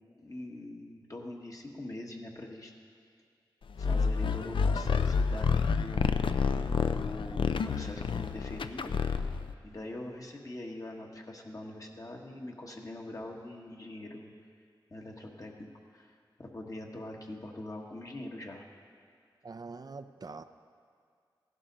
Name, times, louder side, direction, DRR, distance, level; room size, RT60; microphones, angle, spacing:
voice 1, 0.2-2.7 3.8-6.4 6.8-8.9 9.6-14.3 14.9-15.7 15.9-18.6, left 1 dB, 40° left, 0 dB, 1.4 m, -43 dB
sound 1, 3.8-9.5, left 5 dB, 80° left, 0.4 m, -29 dB
voice 2, 19.4-20.4, right 4 dB, 50° right, 10 dB, 0.4 m, -44 dB
16.0 x 11.5 x 4.0 m, 2.2 s
wide cardioid pair, 80°, 9 cm